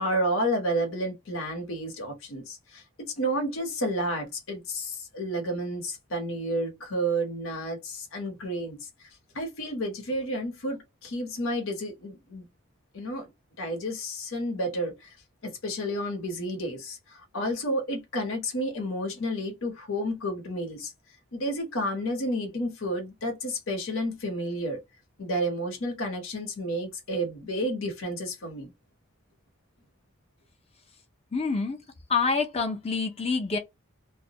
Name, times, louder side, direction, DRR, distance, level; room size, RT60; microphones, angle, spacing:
voice 1, 0.0-8.9 9.3-12.5 12.9-13.3 13.6-15.1 15.4-20.9 21.3-24.8 25.2-28.7, equal, 85° left, 0.9 m, -31 dB
voice 2, 31.3-31.8 32.1-33.6, left 4 dB, 30° left, 0.5 m, -27 dB
2.2 x 2.1 x 2.7 m
head